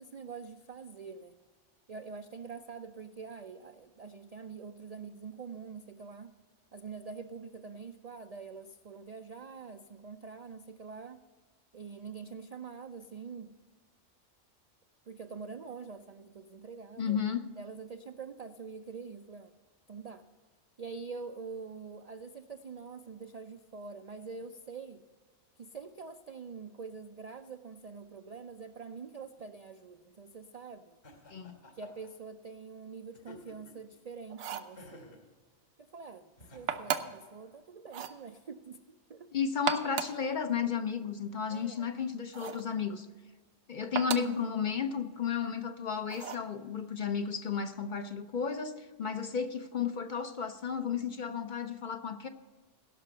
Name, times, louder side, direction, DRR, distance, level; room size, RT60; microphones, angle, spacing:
voice 1, 0.0-1.4 1.9-6.3 6.7-11.2 11.7-13.6 15.1-17.2 17.6-19.5 19.9-20.2 20.8-25.0 25.6-31.0 31.7-35.2 35.8-39.3 41.5-41.9, right 5 dB, 60° right, 8 dB, 0.4 m, -45 dB
voice 2, 17.0-17.4 31.3-31.6 39.3-43.1 43.7-52.3, left 6 dB, 50° left, 8 dB, 0.7 m, -33 dB
Laughter, 31.0-32.1 33.1-33.9 34.8-35.3 36.4-37.1, left 2 dB, 70° left, 2.5 m, -53 dB
sound 1, 34.3-34.8 36.7-37.3 37.9-38.2 39.5-40.2 42.3-42.7 43.9-44.4 46.1-46.5, right 8 dB, 75° right, 1.0 m, -35 dB
16.5 x 6.0 x 6.7 m, 1.4 s
omnidirectional pair, 1.3 m